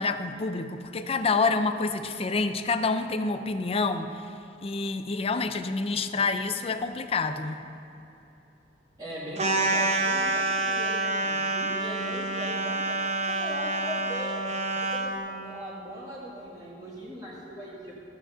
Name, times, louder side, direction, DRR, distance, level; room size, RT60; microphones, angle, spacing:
voice 1, 0.0-4.1 4.6-7.6, left 4 dB, 35° left, 9 dB, 0.5 m, -27 dB
voice 2, 9.0-14.5 14.9-17.9, equal, 20° right, -8 dB, 1.8 m, -39 dB
sound 1, 9.4-15.2, right 2 dB, 40° right, 0.9 m, -27 dB
14.5 x 6.3 x 6.7 m, 2.9 s
head